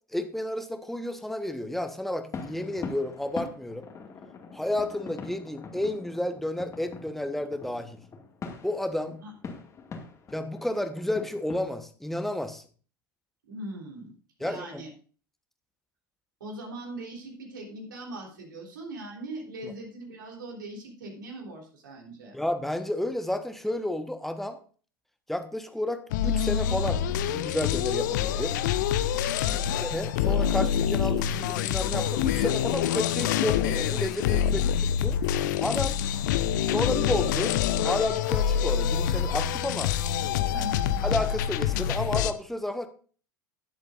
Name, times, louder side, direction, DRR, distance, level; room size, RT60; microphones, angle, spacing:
voice 1, 0.1-3.9 4.5-8.0 8.6-9.2 10.3-12.6 14.4-14.8 19.6-19.7 22.3-24.6 25.3-28.6 29.8-35.2 35.6-36.0 36.7-37.5 37.8-39.9 41.0-42.9, left 1 dB, ahead, 8 dB, 1.2 m, -31 dB
sound 1, 2.3-11.7, left 5 dB, 30° left, 2.1 m, -42 dB
voice 2, 13.5-14.1 14.4-14.9 16.4-22.4 29.4-29.8 40.5-41.0, right 1 dB, 70° right, 0 dB, 3.7 m, -40 dB
sound 2, 26.1-42.3, left 9 dB, 60° left, 0.6 m, -26 dB
18.0 x 7.9 x 2.6 m, 0.40 s
figure-of-eight pair, 80°, 11 cm